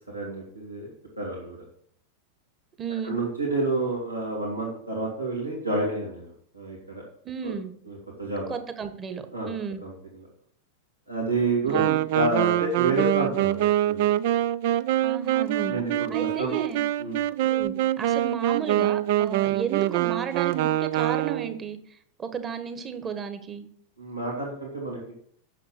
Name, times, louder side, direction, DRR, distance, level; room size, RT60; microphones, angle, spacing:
voice 1, 0.1-1.6 3.0-7.0 7.4-7.5 7.9-8.5 9.3-9.5 9.8-10.3 11.1-14.1 15.7-16.5 17.0-17.2 24.0-25.0, right 2 dB, 85° right, -4 dB, 2.9 m, -29 dB
voice 2, 2.8-3.2 7.2-7.7 8.5-9.8 11.7-11.9 15.0-15.8 16.1-16.8 17.4-21.8 22.2-23.7, right 7 dB, 25° right, 9 dB, 1.3 m, -33 dB
Wind instrument woodwind instrument, 11.7-21.6, right 14 dB, 50° right, 0.4 m, -25 dB
9.1 x 7.0 x 5.9 m, 0.63 s
figure-of-eight pair, 90°, 0 cm